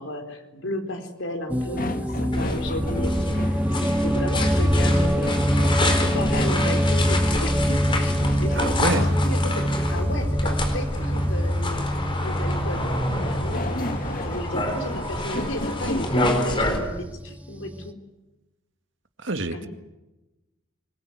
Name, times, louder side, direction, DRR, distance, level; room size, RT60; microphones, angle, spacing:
voice 1, 0.0-12.9 13.2-13.9 14.2-18.0 19.5-19.7, left 1 dB, 70° left, 5 dB, 4.1 m, -34 dB
sound 1, 1.5-17.9, equal, 5° right, 1.0 m, -25 dB
sound 2, 1.7-3.6 5.1-6.9 8.2-9.5 13.2-16.4, left 1 dB, 40° left, 1.6 m, -33 dB
sound 3, 2.3-16.8, left 1 dB, 25° left, 4.4 m, -29 dB
voice 2, 8.5-9.1 19.2-19.7, right 2 dB, 65° right, 8 dB, 2.0 m, -27 dB
25.5 x 21.5 x 9.4 m, 1.0 s
head